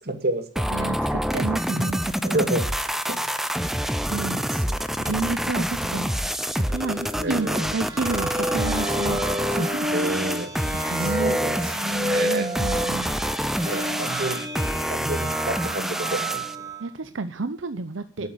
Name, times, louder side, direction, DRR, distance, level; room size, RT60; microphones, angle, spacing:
voice 1, 0.0-0.7 2.2-2.7 3.1-3.3 7.2-7.7 9.9-10.5 11.0-11.5 11.8-12.5 13.6-14.4 14.9-16.4 18.2-18.3, right 1 dB, 55° right, 7 dB, 2.1 m, -29 dB
sound 1, 0.6-16.6, equal, ahead, 0.6 m, -27 dB
voice 2, 0.7-2.5 4.1-4.4 5.0-6.2 6.5-9.9 10.7-11.5 12.2-13.2 16.8-18.3, right 3 dB, 85° right, 11 dB, 0.8 m, -31 dB
sound 2, 6.6-16.9, equal, 20° right, 2.1 m, -30 dB
12.0 x 8.4 x 9.4 m, 0.43 s
head